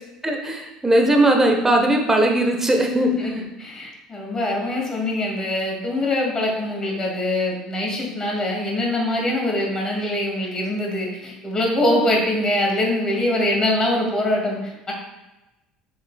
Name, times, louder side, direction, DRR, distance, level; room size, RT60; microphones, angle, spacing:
voice 1, 0.2-3.5, right 1 dB, 15° right, 2 dB, 1.0 m, -19 dB
voice 2, 3.6-14.9, left 1 dB, 25° left, -1 dB, 2.1 m, -23 dB
7.4 x 5.7 x 2.2 m, 1.0 s
figure-of-eight pair, 60°, 3 cm